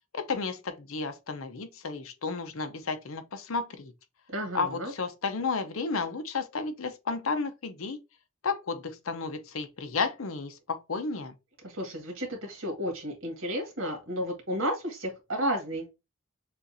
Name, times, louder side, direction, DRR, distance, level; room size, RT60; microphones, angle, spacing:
voice 1, 0.1-3.9 4.5-8.0 8.4-11.3, left 4 dB, 85° left, 0.8 m, -32 dB
voice 2, 4.3-4.9 11.6-15.9, equal, 75° right, 1.9 m, -32 dB
6.7 x 2.6 x 2.7 m
head